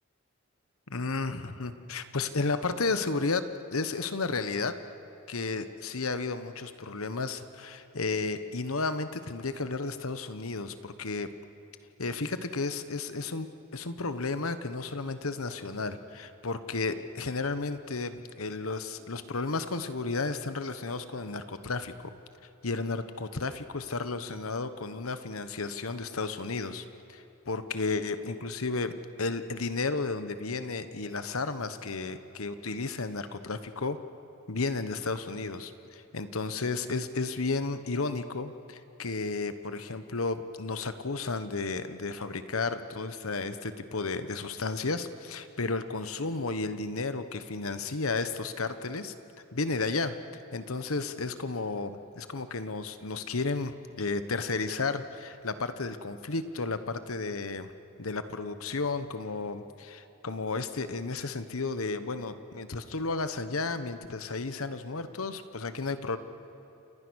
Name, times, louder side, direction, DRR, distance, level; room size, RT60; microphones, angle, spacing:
voice 1, 0.9-3.4 3.7-4.7 5.3-11.3 12.0-22.1 22.6-34.0 34.5-49.1 49.5-50.2 50.5-57.7 58.0-66.2, left 3 dB, 85° left, 11 dB, 1.2 m, -33 dB
29.5 x 28.0 x 6.4 m, 2.9 s
head